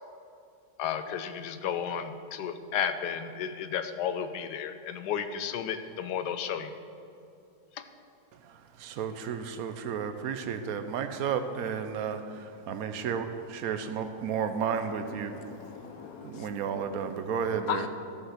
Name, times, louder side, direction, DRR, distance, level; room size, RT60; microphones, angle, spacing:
voice 1, 0.8-6.7, left 8 dB, 90° left, 9 dB, 1.2 m, -33 dB
voice 2, 8.4-15.5 16.2-17.8, right 7 dB, 65° right, 9 dB, 1.1 m, -33 dB
voice 3, 14.8-17.9, left 10 dB, 70° left, 9 dB, 1.1 m, -40 dB
14.0 x 5.6 x 5.7 m, 2.6 s
omnidirectional pair, 1.7 m